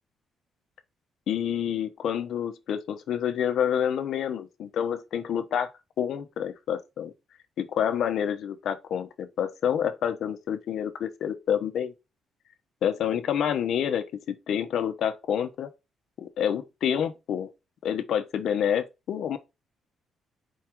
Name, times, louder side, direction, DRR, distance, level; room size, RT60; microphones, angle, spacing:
voice 1, 1.3-5.7 6.0-7.1 7.6-11.9 12.8-15.7 16.2-17.5 17.8-19.4, left 9 dB, 70° left, 0.7 m, -28 dB
4.7 x 2.3 x 4.4 m
cardioid pair, 90°, 0 cm